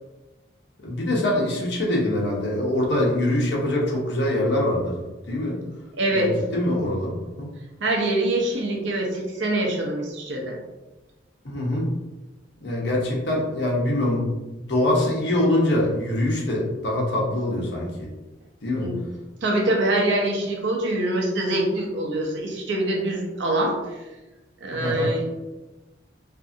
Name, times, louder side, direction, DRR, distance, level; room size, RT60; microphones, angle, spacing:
voice 1, 0.8-5.6 6.1-7.5 11.4-11.9 12.6-14.4 14.7-18.1 18.6-18.9 24.7-25.1, left 1 dB, 65° left, -3 dB, 0.8 m, -24 dB
voice 2, 6.0-6.3 7.8-10.6 18.8-19.0 19.4-24.0 24.6-25.4, right 1 dB, 75° right, 0 dB, 0.6 m, -24 dB
2.6 x 2.5 x 2.5 m, 1.1 s
head